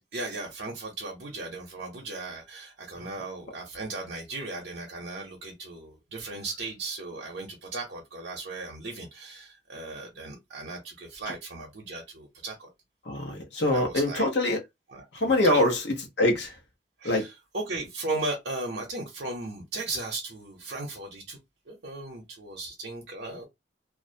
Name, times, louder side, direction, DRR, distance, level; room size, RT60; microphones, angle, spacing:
voice 1, 0.0-12.7 13.6-14.3 14.9-15.7 17.0-21.4 21.7-23.5, right 2 dB, 70° right, 0.7 m, -36 dB
voice 2, 13.1-14.6 15.1-15.8 16.2-16.5 17.0-17.3, left 1 dB, 70° left, 0.8 m, -24 dB
2.4 x 2.1 x 2.5 m
head